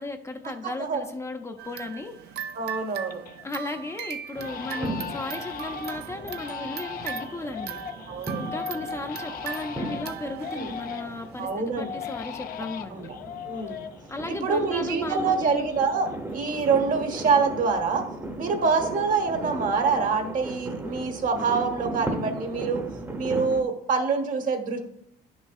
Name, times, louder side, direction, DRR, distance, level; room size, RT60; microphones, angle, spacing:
voice 1, 0.0-2.2 3.4-7.8 8.4-13.0 14.1-15.7, left 2 dB, 15° left, 5 dB, 0.6 m, -35 dB
Crying sobbing, 1.2-1.3 1.7-2.2 2.6-3.4 3.7-3.9 4.3-11.3 11.7-15.1 15.3-16.9 17.1-17.7, left 8 dB, 60° left, 0.6 m, -39 dB
sound 1, 1.6-11.6, right 9 dB, 70° right, 0.7 m, -39 dB
voice 2, 2.5-3.2 4.8-5.0 8.1-8.5 10.6-10.7 11.4-11.9 12.9-13.1 13.5-13.8 14.4-18.0 18.4-22.8 23.2-24.8, right 5 dB, 50° right, 6 dB, 1.3 m, -26 dB
sound 2, 4.4-23.6, right 2 dB, 15° right, 0.9 m, -37 dB
10.5 x 6.2 x 2.4 m, 0.72 s
cardioid pair, 110°, 17 cm